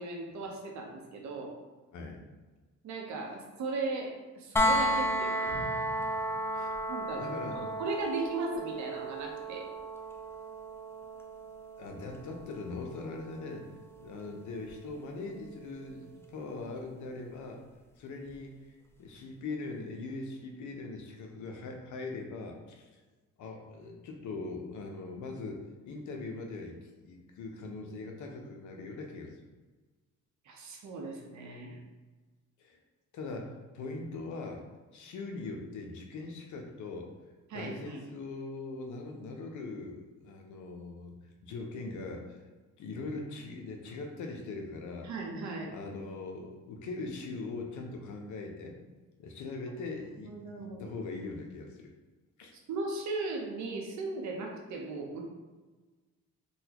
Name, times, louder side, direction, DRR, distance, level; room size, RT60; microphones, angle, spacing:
voice 1, 0.0-1.5 2.8-5.4 6.9-7.2 7.5-9.7 30.4-31.8 37.5-38.0 45.0-45.7 50.2-51.0 52.7-55.2, right 3 dB, 70° right, 1 dB, 0.8 m, -37 dB
voice 2, 1.9-2.2 6.5-6.8 7.2-7.6 11.8-13.7 14.0-17.6 18.0-18.5 19.0-23.0 23.4-29.3 32.6-32.8 33.1-34.6 34.9-37.1 37.5-41.1 41.4-42.4 42.8-45.1 45.7-48.8 49.2-51.9 52.4-52.5, left 3 dB, 75° left, 2 dB, 0.7 m, -41 dB
sound 1, 4.6-16.4 18.3-18.4, equal, 10° left, 0.3 m, -35 dB
sound 2, 5.5-7.6 8.0-8.1, left 1 dB, 25° right, 0.9 m, -48 dB
4.0 x 2.2 x 2.9 m, 1.3 s
cardioid pair, 90°, 30 cm